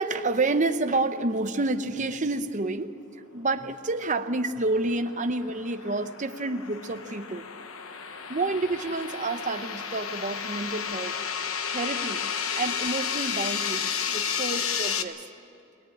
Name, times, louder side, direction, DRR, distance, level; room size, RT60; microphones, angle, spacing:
voice 1, 0.0-7.5 8.3-11.1 11.7-12.2 12.5-15.3, right 2 dB, 35° right, 8 dB, 0.8 m, -29 dB
sound 1, 4.6-15.0, left 7 dB, 65° left, 1.0 m, -32 dB
21.5 x 18.5 x 8.6 m, 2.7 s
head